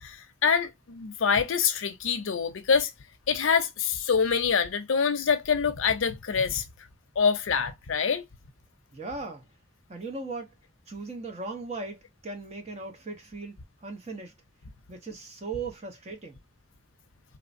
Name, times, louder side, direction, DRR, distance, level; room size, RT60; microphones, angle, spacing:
voice 1, 0.0-2.9 3.3-6.6 7.2-8.2, left 6 dB, 80° left, 0.5 m, -25 dB
voice 2, 8.9-9.5 9.9-10.6 10.9-14.3 14.9-16.4, right 3 dB, 35° right, 0.7 m, -38 dB
3.1 x 2.0 x 2.5 m
head